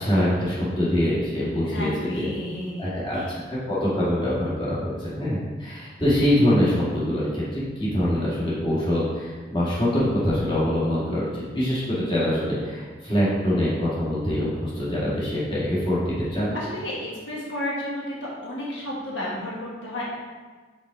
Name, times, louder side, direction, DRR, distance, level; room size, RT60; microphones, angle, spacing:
voice 1, 0.0-2.3 2.8-16.6, left 1 dB, 25° left, -8 dB, 1.8 m, -24 dB
voice 2, 1.6-3.3 16.5-20.1, left 1 dB, 75° left, -5 dB, 1.3 m, -32 dB
5.4 x 3.8 x 4.8 m, 1.4 s
head